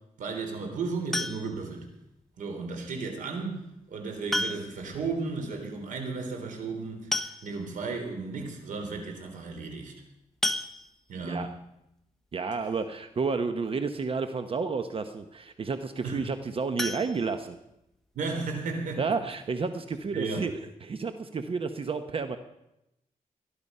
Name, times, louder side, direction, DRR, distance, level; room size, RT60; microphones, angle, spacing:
voice 1, 0.2-1.9 2.4-3.6 3.9-9.9 11.1-11.5 16.0-16.2 18.1-19.0 20.1-20.5, right 4 dB, 80° right, 4 dB, 3.6 m, -34 dB
sound 1, 1.1-1.8 3.2-3.3 4.3-4.9 5.2-5.3 5.6-5.7 6.7-6.8 7.1-7.8 8.4-8.5 8.8-9.0 10.4-11.3 16.7-17.9 18.3-18.4 18.8-18.9 19.3-19.4, left 1 dB, 5° left, 1.1 m, -32 dB
voice 2, 12.3-17.6 19.0-20.5 20.8-22.4, right 4 dB, 45° right, 9 dB, 1.0 m, -31 dB
20.0 x 11.5 x 5.5 m, 0.87 s
cardioid pair, 100°, 13 cm